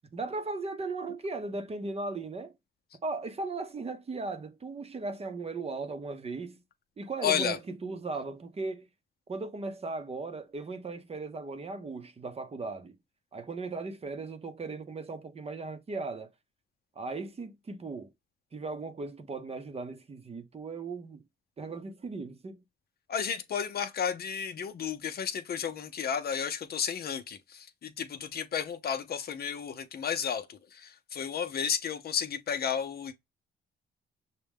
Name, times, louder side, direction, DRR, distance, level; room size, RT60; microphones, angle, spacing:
voice 1, 0.1-2.5 3.0-6.6 7.0-8.9 9.3-12.9 13.3-16.3 17.0-18.1 18.5-21.2 21.6-22.6, right 3 dB, 30° right, 0.7 m, -37 dB
voice 2, 7.2-7.6 23.1-33.1, left 7 dB, 50° left, 0.7 m, -32 dB
6.0 x 2.2 x 3.5 m
cardioid pair, 90°, 20 cm